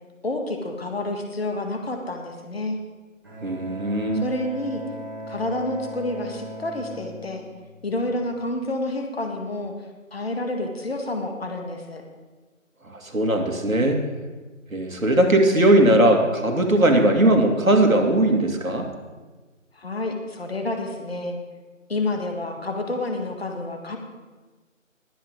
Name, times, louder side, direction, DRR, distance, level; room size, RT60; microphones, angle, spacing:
voice 1, 0.2-2.8 4.1-4.8 5.3-7.4 7.8-9.7 10.1-12.0 19.7-21.4 21.9-24.0, left 2 dB, 50° left, 3 dB, 1.7 m, -29 dB
Bowed string instrument, 3.2-8.3, right 1 dB, 15° right, 1.6 m, -39 dB
voice 2, 3.4-4.2 12.9-14.0 14.7-18.9, right 1 dB, 85° right, 3 dB, 2.3 m, -19 dB
21.0 x 8.1 x 3.6 m, 1.3 s
figure-of-eight pair, 170°, 40 cm